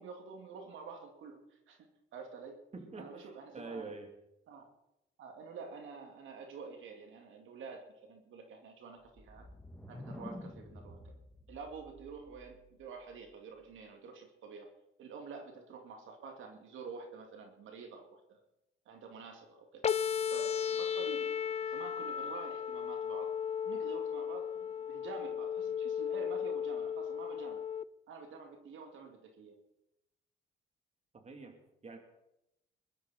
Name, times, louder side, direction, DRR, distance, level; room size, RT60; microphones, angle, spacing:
voice 1, 0.0-2.6 3.0-3.9 4.5-4.7 5.2-9.4 9.9-11.1 11.5-14.7 15.0-18.4 18.9-19.9 20.3-23.3 23.7-27.6 28.1-29.6, right 5 dB, 80° right, 4 dB, 2.5 m, -48 dB
voice 2, 2.7-4.1 31.1-32.0, right 3 dB, 35° right, 4 dB, 3.1 m, -46 dB
sound 1, 9.1-12.9, left 1 dB, 5° left, 1.6 m, -49 dB
sound 2, 19.8-27.8, left 8 dB, 35° left, 0.5 m, -35 dB
22.5 x 12.5 x 4.3 m, 0.86 s
cardioid pair, 90°, 20 cm